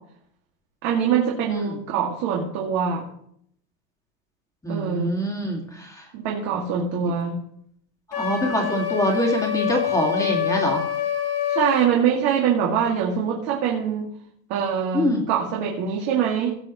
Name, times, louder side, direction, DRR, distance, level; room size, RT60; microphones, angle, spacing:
voice 1, 0.8-3.0 4.7-5.1 6.1-7.4 11.5-14.1 14.5-16.5, right 7 dB, 55° right, -2 dB, 2.3 m, -23 dB
voice 2, 4.6-6.1 8.1-10.8 14.9-15.2, equal, 5° left, 1 dB, 2.1 m, -25 dB
Wind instrument woodwind instrument, 8.1-11.9, left 10 dB, 50° left, 1.8 m, -26 dB
17.5 x 8.1 x 3.1 m, 0.69 s
supercardioid pair, 150°, 44 cm